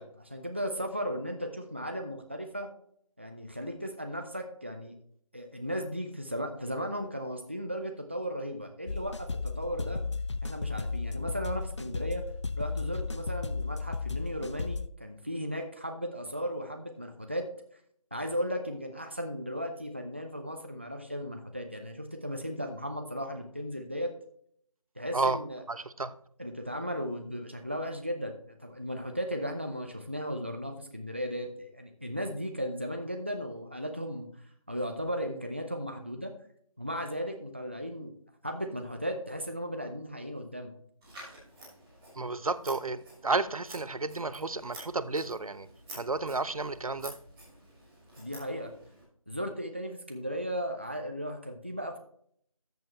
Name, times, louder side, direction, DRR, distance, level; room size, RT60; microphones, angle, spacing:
voice 1, 0.0-2.7 3.2-4.9 5.3-10.0 10.4-12.2 12.6-17.4 18.1-24.1 25.0-25.6 26.4-28.3 28.6-34.3 34.7-36.3 36.8-38.1 38.4-40.7 48.2-48.7 49.3-52.0, equal, 20° right, 5 dB, 0.5 m, -36 dB
sound 1, 8.9-14.9, left 4 dB, 55° left, 0.5 m, -34 dB
voice 2, 25.7-26.1 42.2-45.7 45.9-47.1, right 3 dB, 75° right, 14 dB, 0.8 m, -31 dB
Scissors, 41.0-49.0, right 1 dB, 5° right, 1.5 m, -50 dB
13.5 x 6.7 x 3.1 m, 0.64 s
figure-of-eight pair, 175°, 18 cm